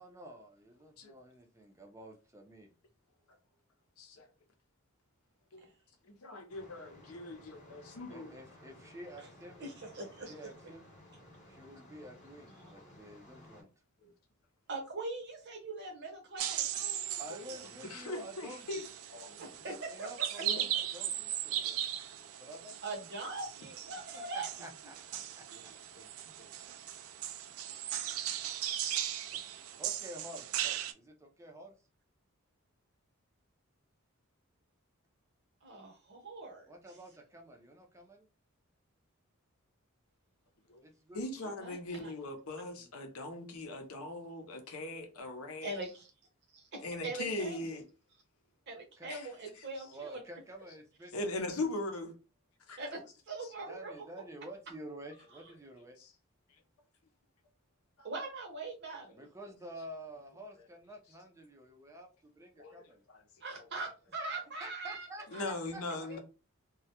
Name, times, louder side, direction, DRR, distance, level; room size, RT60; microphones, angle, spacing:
voice 1, 0.0-2.7 8.1-9.6 10.0-10.8 11.5-13.7 17.2-18.9 19.5-21.9 22.4-22.8 23.9-25.7 29.3-29.5 29.8-31.8 36.7-38.3 40.8-41.2 42.8-42.9 49.0-49.1 49.8-51.7 53.7-56.0 59.1-63.0 64.6-65.8, right 1 dB, 15° right, 0.4 m, -50 dB
voice 2, 4.0-4.3 5.5-5.7 6.0-8.3 14.0-14.1 17.8-19.4 20.4-20.7 25.5-25.6 25.9-26.1 26.4-26.5 40.7-40.8 41.1-45.7 46.8-47.9 49.1-49.3 49.5-49.9 51.1-52.1 52.7-52.8 53.4-53.5 56.0-56.1 58.0-58.1 59.1-59.2 62.6-62.8 63.1-63.2 63.6-63.7 65.3-66.2, left 2 dB, 80° left, 0.6 m, -40 dB
sound 1, 6.5-13.6, left 1 dB, 35° left, 0.9 m, -56 dB
voice 3, 9.6-10.3 14.7-17.5 19.4-20.1 20.3-20.4 22.8-24.5 35.6-36.7 41.6-42.1 45.6-46.1 46.5-47.6 48.7-50.2 52.8-53.0 53.3-54.1 58.0-59.2 63.4-65.1 65.3-65.4 66.1-66.2, right 2 dB, 50° right, 0.7 m, -42 dB
sound 2, 16.4-30.9, right 11 dB, 75° right, 0.3 m, -38 dB
2.2 x 2.0 x 2.8 m
head